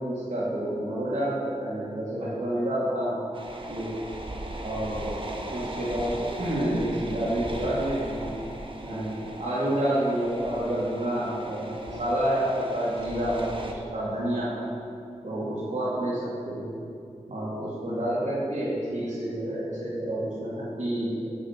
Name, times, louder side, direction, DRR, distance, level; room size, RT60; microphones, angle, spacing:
voice 1, 0.0-3.2 3.7-3.9 4.6-5.1 5.5-8.3 8.8-14.7 15.2-16.2 16.4-16.8 17.3-21.3, right 1 dB, 60° right, -9 dB, 2.4 m, -29 dB
sound 1, 3.3-13.7, right 1 dB, 40° right, 1.1 m, -39 dB
9.7 x 7.6 x 4.6 m, 2.5 s
cardioid pair, 40°, 13 cm